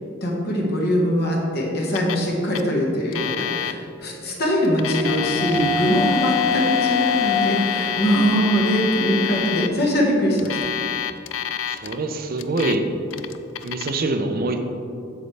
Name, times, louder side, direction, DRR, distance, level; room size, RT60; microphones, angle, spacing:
voice 1, 0.2-10.6, equal, 55° left, -2 dB, 1.4 m, -22 dB
Alarm, 1.9-2.3 2.5-2.6 3.1-3.7 4.6-9.7 10.4-11.9 12.4-12.8 13.1-13.9, left 10 dB, 75° left, 0.4 m, -27 dB
sound 1, 4.1-10.0, left 4 dB, ahead, 0.8 m, -27 dB
voice 2, 11.7-12.9 13.6-14.6, right 2 dB, 50° right, 6 dB, 0.5 m, -24 dB
8.0 x 6.8 x 3.3 m, 2.5 s
head